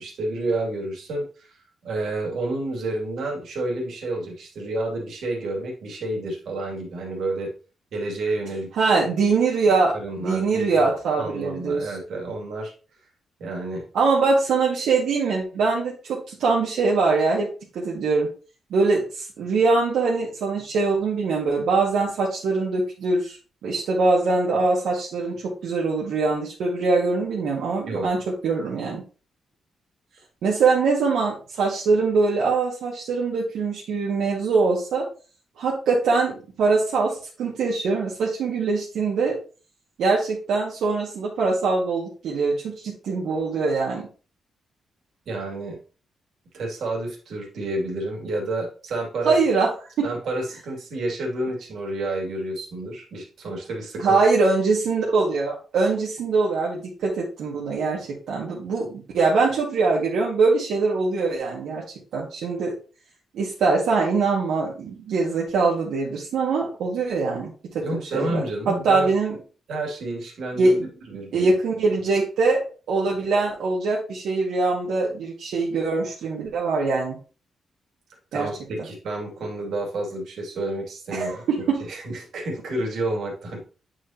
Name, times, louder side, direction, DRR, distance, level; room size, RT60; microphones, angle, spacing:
voice 1, 0.0-1.5 1.8-7.5 7.9-8.9 9.9-10.9 11.2-12.7 13.4-13.9 27.9-28.1 45.3-45.8 46.5-49.3 50.0-54.2 67.8-69.1 69.7-70.8 71.1-71.6 78.3-83.6, right 2 dB, 70° right, -1 dB, 2.5 m, -30 dB
voice 2, 8.8-11.9 13.9-17.5 17.7-18.3 18.7-23.4 23.6-29.0 30.4-35.1 35.6-39.4 40.0-44.1 49.3-49.7 50.0-50.1 54.0-61.8 62.1-62.7 63.3-67.8 68.1-69.4 70.6-70.9 71.3-72.6 72.9-77.2 78.3-78.5 81.1-81.8, right 4 dB, 85° right, -5 dB, 1.8 m, -23 dB
8.7 x 4.9 x 2.8 m, 0.36 s
wide cardioid pair, 155°, 0 cm